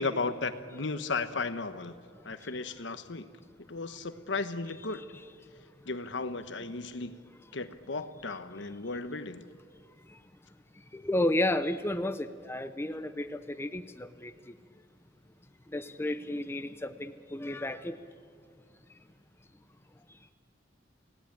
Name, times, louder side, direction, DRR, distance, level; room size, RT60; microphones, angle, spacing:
voice 1, 0.0-2.0 2.2-3.3 3.7-5.1 5.9-7.1 7.5-9.4, left 3 dB, 70° left, 1.2 m, -35 dB
voice 2, 10.9-14.6 15.7-18.0 20.1-20.2, left 1 dB, 15° left, 0.6 m, -32 dB
29.5 x 17.5 x 8.8 m
head